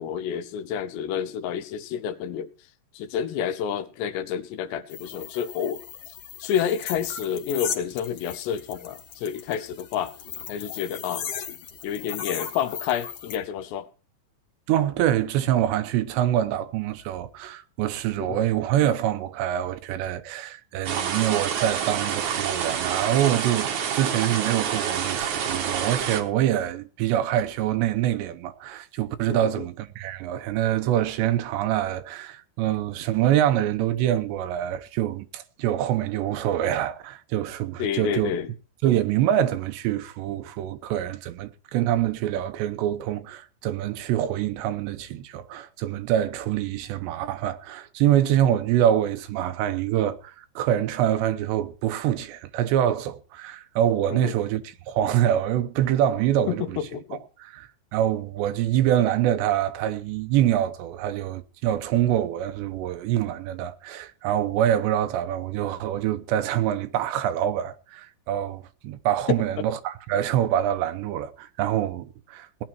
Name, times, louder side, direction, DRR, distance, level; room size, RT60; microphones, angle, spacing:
voice 1, 0.0-2.5 2.9-5.8 6.4-10.1 10.5-11.3 11.8-13.9 18.2-18.4 29.3-29.7 37.8-38.5 54.1-54.4 56.5-57.2, left 8 dB, 80° left, 2.9 m, -29 dB
sound 1, 4.9-13.4, left 8 dB, 60° left, 2.7 m, -37 dB
voice 2, 14.7-38.3 38.8-56.8 57.4-72.6, right 11 dB, 80° right, 3.0 m, -25 dB
sound 2, 20.9-26.2, right 8 dB, 60° right, 2.1 m, -28 dB
18.0 x 10.0 x 4.6 m
omnidirectional pair, 5.1 m